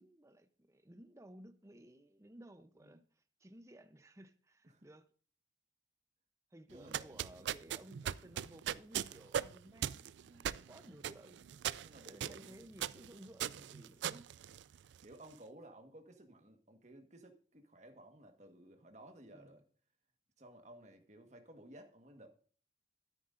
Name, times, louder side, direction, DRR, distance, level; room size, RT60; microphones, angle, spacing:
voice 1, 0.0-5.1 6.5-11.5 12.0-14.3 19.3-19.6, right 1 dB, 15° right, 0.7 m, -57 dB
voice 2, 6.7-7.5 10.8-11.0 11.8-12.7 15.0-19.6 20.4-22.3, right 1 dB, 40° right, 1.4 m, -56 dB
sound 1, 6.7-15.1, right 9 dB, 80° right, 0.3 m, -40 dB
13.0 x 9.5 x 2.6 m
head